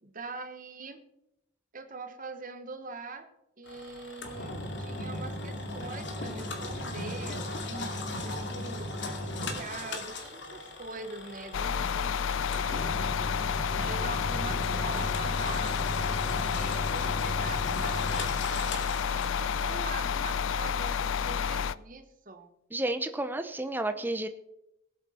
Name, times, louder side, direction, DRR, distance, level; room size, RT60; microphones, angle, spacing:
voice 1, 0.0-1.0 1.7-3.3 3.6-12.8 13.7-15.8 16.4-22.5, right 3 dB, 45° right, 7 dB, 1.3 m, -43 dB
Engine, 3.7-19.8, left 1 dB, 70° left, 2.3 m, -37 dB
sound 1, 11.5-21.7, left 7 dB, 90° left, 0.4 m, -30 dB
voice 2, 22.7-24.3, right 2 dB, 10° right, 8 dB, 0.8 m, -31 dB
18.5 x 8.1 x 4.4 m, 0.82 s
head